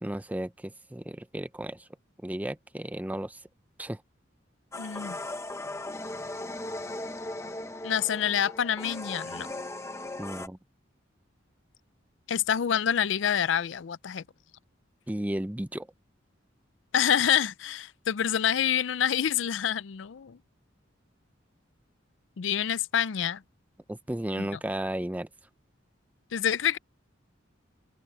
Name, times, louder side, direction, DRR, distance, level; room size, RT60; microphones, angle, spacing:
voice 1, 0.0-1.8 2.2-3.4 3.8-4.0 10.2-10.6 15.1-15.9 23.9-25.3, right 1 dB, 10° right, 0.5 m, -34 dB
sound 1, 4.7-10.5, left 2 dB, 15° left, 1.0 m, -38 dB
voice 2, 4.8-5.2 7.8-9.5 12.3-14.2 16.9-20.4 22.4-23.4 24.4-24.5 26.3-26.8, left 9 dB, 70° left, 0.5 m, -27 dB
open air
head